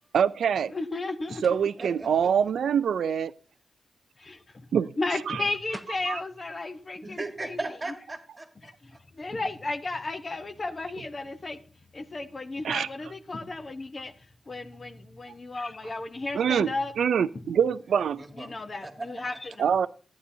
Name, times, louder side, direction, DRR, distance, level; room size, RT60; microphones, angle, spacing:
voice 1, 0.1-0.7 1.4-3.3 4.7-4.9 5.3-5.5 6.1-6.2 12.6-12.9 16.3-18.2 19.6-19.9, right 7 dB, 85° right, 0.4 m, -25 dB
voice 2, 0.7-1.5 4.2-4.4 5.0-7.6 8.6-8.7 9.1-11.6 11.9-14.1 14.5-16.9 17.4-17.5 18.4-19.7, left 3 dB, 30° left, 0.9 m, -34 dB
sound 1, 1.4-1.7 5.4-5.5 5.7-6.1, equal, 5° left, 0.6 m, -44 dB
voice 3, 1.8-2.3 7.0-9.0 17.9-18.5 18.8-19.4, right 2 dB, 20° right, 1.6 m, -38 dB
14.5 x 10.0 x 2.7 m
wide cardioid pair, 140°, 0 cm